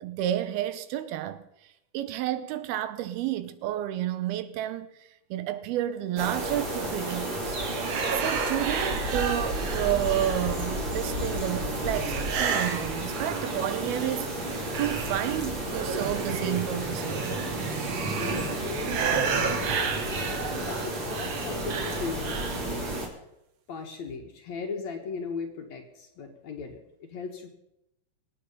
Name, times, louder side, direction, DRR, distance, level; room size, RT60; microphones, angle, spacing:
voice 1, 0.0-1.5 1.9-4.9 5.3-7.6 8.2-14.3 14.8-17.2, right 12 dB, 85° right, 2.8 m, -30 dB
sound 1, 6.2-23.1, right 1 dB, 35° right, 3.1 m, -32 dB
sound 2, 7.6-10.8 11.9-13.9 14.2-22.7, right 6 dB, 55° right, 1.9 m, -33 dB
voice 2, 18.2-19.7 20.0-23.0 23.7-27.5, left 5 dB, 55° left, 2.3 m, -38 dB
24.5 x 8.8 x 5.5 m
omnidirectional pair, 4.4 m